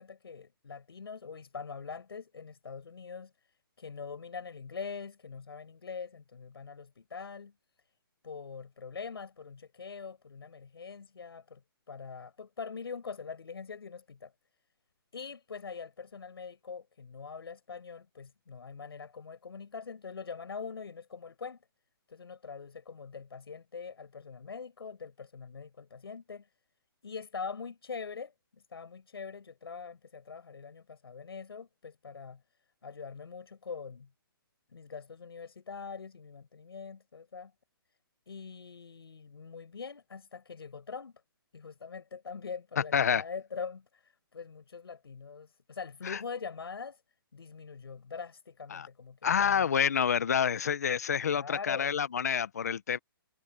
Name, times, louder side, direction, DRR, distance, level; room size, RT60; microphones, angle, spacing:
voice 1, 0.0-3.3 3.8-7.5 8.2-11.6 11.9-14.3 15.1-21.6 22.1-26.5 27.0-28.3 28.7-32.4 32.8-34.1 34.7-37.5 38.3-41.1 41.5-47.0 47.3-49.8 51.2-52.0, left 5 dB, 85° left, 7.7 m, -43 dB
voice 2, 42.9-43.2 46.0-46.2 48.7-48.9 49.2-53.0, left 7 dB, 40° left, 1.1 m, -28 dB
hypercardioid pair, 180°, 12 cm